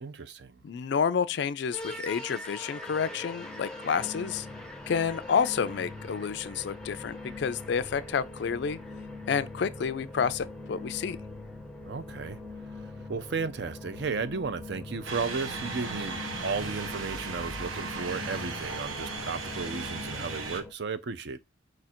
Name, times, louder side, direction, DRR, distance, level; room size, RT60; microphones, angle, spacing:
voice 1, 0.0-0.6 11.9-12.4 12.7-21.4, right 5 dB, 55° right, 0.5 m, -34 dB
voice 2, 0.6-4.5 4.9-8.8 9.3-11.2, left 6 dB, 55° left, 0.3 m, -29 dB
sound 1, 1.7-20.7, left 2 dB, 5° left, 0.5 m, -42 dB
sound 2, 15.0-20.6, right 4 dB, 85° right, 0.9 m, -36 dB
4.9 x 2.5 x 4.2 m
head